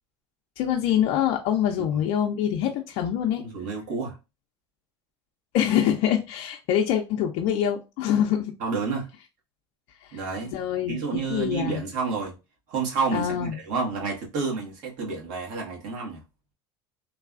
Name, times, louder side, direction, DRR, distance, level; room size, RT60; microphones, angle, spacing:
voice 1, 0.6-3.4 5.5-8.5 10.0-10.2 10.5-11.8 13.1-13.6, left 10 dB, 65° left, 0.5 m, -25 dB
voice 2, 3.4-4.2 8.6-9.1 10.1-10.6 10.9-12.3 12.7-16.2, right 4 dB, 65° right, 1.4 m, -30 dB
3.2 x 2.3 x 2.4 m
supercardioid pair, 100°, 14 cm